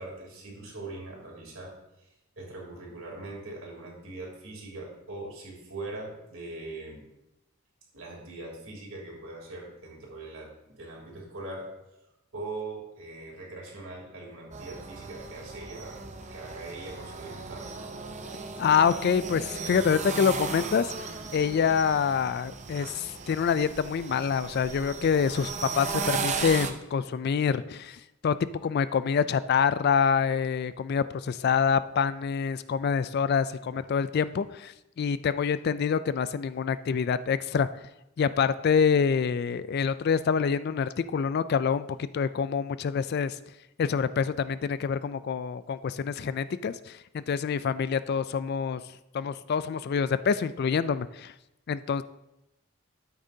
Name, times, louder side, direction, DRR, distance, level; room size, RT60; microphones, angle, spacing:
voice 1, 0.0-7.0 7.9-11.7 12.3-16.0 16.3-17.7, right 2 dB, 70° right, -2 dB, 3.2 m, -41 dB
sound 1, 14.5-26.7, right 4 dB, 35° right, 0.7 m, -36 dB
voice 2, 18.6-20.9 21.3-28.4 28.6-37.7 38.2-43.4 43.8-48.8 49.1-51.3 51.7-52.0, left 6 dB, 50° left, 15 dB, 0.3 m, -26 dB
13.0 x 8.6 x 2.7 m, 0.91 s
head